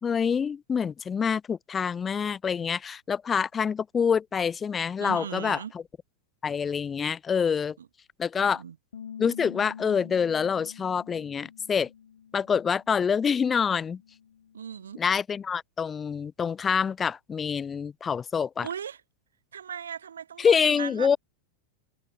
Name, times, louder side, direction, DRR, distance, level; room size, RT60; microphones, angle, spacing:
voice 1, 0.0-5.8 6.4-7.8 8.2-8.6 9.2-11.9 12.3-14.0 15.0-18.7 20.4-21.2, left 6 dB, 20° left, 0.8 m, -26 dB
voice 2, 5.0-5.7 7.8-7.9 8.4-8.8 14.5-15.0 18.6-19.0 19.5-21.2, right 8 dB, 65° right, 1.0 m, -38 dB
Bass guitar, 8.9-15.2, left 8 dB, 65° left, 1.6 m, -47 dB
figure-of-eight pair, 90°, 0 cm